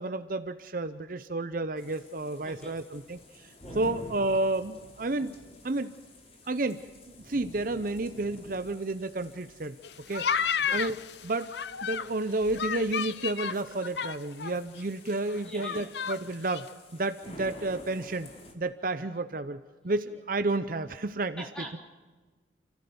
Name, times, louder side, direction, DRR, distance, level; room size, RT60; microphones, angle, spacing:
voice 1, 0.0-5.3 5.6-5.9 6.5-6.8 7.2-9.8 10.1-10.4 10.7-11.0 11.2-11.5 11.8-16.7 16.9-18.3 18.6-19.6 19.8-21.4, right 2 dB, 50° right, 10 dB, 0.7 m, -31 dB
sound 1, 1.8-18.5, left 1 dB, 35° left, 2.7 m, -50 dB
voice 2, 2.4-2.8 3.6-3.8 10.7-10.8 15.4-15.9 20.1-20.2 21.4-21.8, equal, 5° left, 0 dB, 3.7 m, -43 dB
sound 2, 9.8-12.1 12.5-14.5 14.8-14.9 15.1-16.2 16.5-16.7, left 7 dB, 65° left, 0.6 m, -31 dB
29.0 x 15.0 x 7.0 m, 1.3 s
head